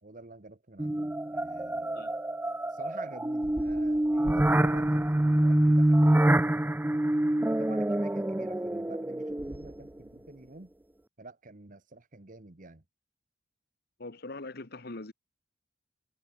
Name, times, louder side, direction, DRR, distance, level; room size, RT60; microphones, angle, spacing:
voice 1, 0.0-2.1 2.7-6.4 7.6-10.7 11.2-12.8, right 2 dB, 45° right, 1.4 m, -49 dB
sound 1, 0.8-9.9, right 1 dB, 10° right, 0.5 m, -26 dB
voice 2, 14.0-15.1, left 2 dB, 60° left, 1.5 m, -41 dB
head